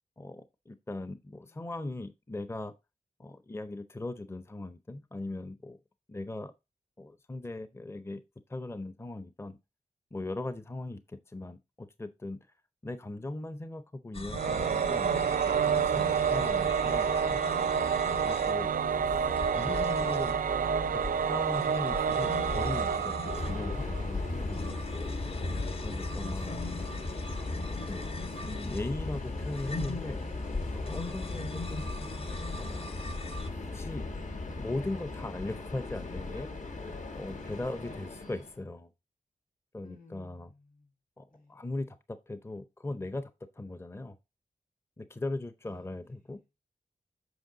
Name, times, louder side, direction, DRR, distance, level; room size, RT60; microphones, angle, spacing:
voice 1, 0.2-2.7 3.2-5.8 6.1-6.5 7.0-8.2 8.5-9.6 10.1-12.4 12.8-15.1 15.6-17.4 18.2-18.7 19.5-20.4 20.9-21.0 21.3-24.7 25.8-26.7 27.8-28.1 28.4-30.2 30.7-31.8 32.6-32.9 33.5-34.0 34.6-36.5 37.2-38.9 39.7-40.5 41.2-43.3 43.6-44.2 45.0-46.4, left 2 dB, 15° left, 0.6 m, -39 dB
voice 2, 1.4-1.7 37.4-38.4 39.8-40.9 41.3-41.6 45.6-46.4, left 2 dB, 75° left, 3.4 m, -59 dB
sound 1, 14.1-33.5, left 2 dB, 40° left, 0.9 m, -40 dB
Singing / Musical instrument, 14.3-24.4, right 7 dB, 75° right, 0.4 m, -29 dB
Subway metro underground, 23.2-38.6, left 2 dB, 60° left, 1.4 m, -37 dB
8.0 x 5.4 x 3.8 m
wide cardioid pair, 80°, 14 cm